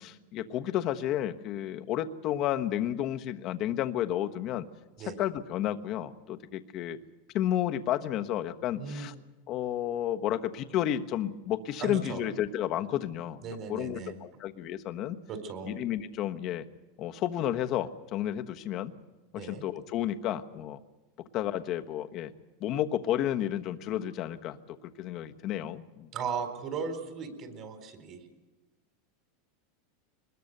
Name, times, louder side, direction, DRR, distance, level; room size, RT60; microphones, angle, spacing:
voice 1, 0.0-4.7 5.2-7.0 7.3-9.1 9.5-13.4 13.7-14.0 14.4-15.2 15.7-16.6 17.0-18.9 19.4-20.8 21.3-22.3 22.6-24.6 25.0-26.1, left 11 dB, 45° left, 8 dB, 1.2 m, -31 dB
voice 2, 8.7-9.1 11.8-12.2 13.4-14.1 15.3-15.7 19.4-19.6 26.1-28.2, right 6 dB, 40° right, 7 dB, 4.2 m, -37 dB
23.5 x 21.0 x 6.8 m, 1.2 s
supercardioid pair, 130°, 0 cm